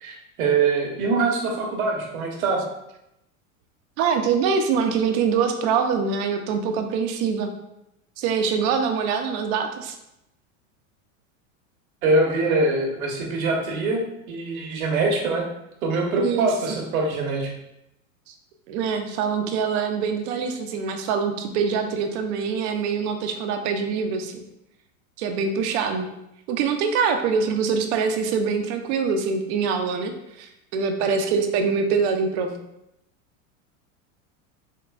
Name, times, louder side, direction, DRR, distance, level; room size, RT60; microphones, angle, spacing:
voice 1, 0.0-2.7 12.0-15.4 15.8-17.5, right 3 dB, 85° right, 0 dB, 1.0 m, -23 dB
voice 2, 4.0-7.5 8.2-10.0 16.2-16.5 18.3-18.4 18.7-24.4 25.2-26.1 26.5-30.1 30.4-32.6, right 6 dB, 50° right, 5 dB, 0.6 m, -24 dB
3.6 x 2.9 x 2.3 m, 0.85 s
hypercardioid pair, 115°, 41 cm